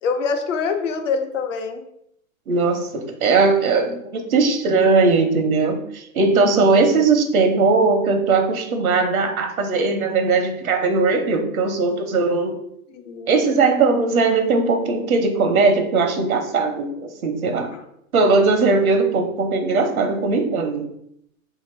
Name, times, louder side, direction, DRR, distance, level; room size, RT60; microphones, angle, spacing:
voice 1, 0.0-1.8 12.9-13.3 17.7-17.8, left 5 dB, 60° left, 5 dB, 0.8 m, -25 dB
voice 2, 2.5-12.6 13.3-17.7 18.1-20.9, right 4 dB, 85° right, 5 dB, 0.9 m, -19 dB
3.2 x 2.9 x 4.2 m, 0.74 s
hypercardioid pair, 135°, 42 cm